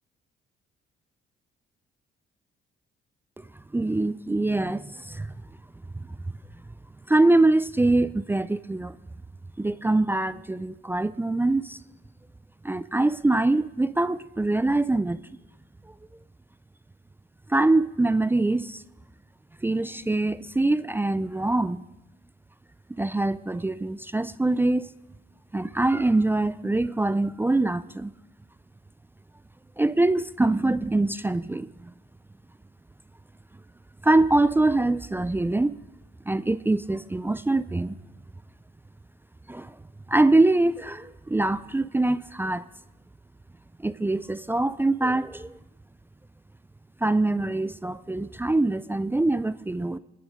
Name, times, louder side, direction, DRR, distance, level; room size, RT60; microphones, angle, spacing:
voice 1, 3.7-5.4 6.0-6.1 7.1-9.0 9.6-11.8 12.6-15.2 17.5-18.8 19.6-21.8 23.0-24.9 25.5-28.1 29.8-31.9 34.0-35.8 36.3-38.0 39.5-39.8 40.1-42.7 43.8-45.6 47.0-50.0, right 2 dB, 10° right, 0.4 m, -24 dB
24.0 x 10.0 x 5.1 m
cardioid pair, 90°, 20 cm